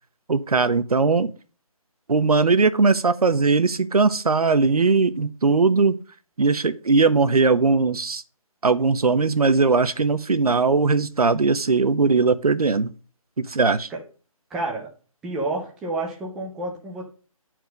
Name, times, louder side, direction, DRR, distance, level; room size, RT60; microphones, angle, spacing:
voice 1, 0.3-1.3 2.1-6.0 6.4-8.2 8.6-12.9 13.5-13.9, right 4 dB, 85° right, 0.9 m, -19 dB
voice 2, 14.5-14.9 15.2-17.0, right 2 dB, ahead, 0.4 m, -29 dB
10.0 x 4.6 x 5.1 m
figure-of-eight pair, 160°, 18 cm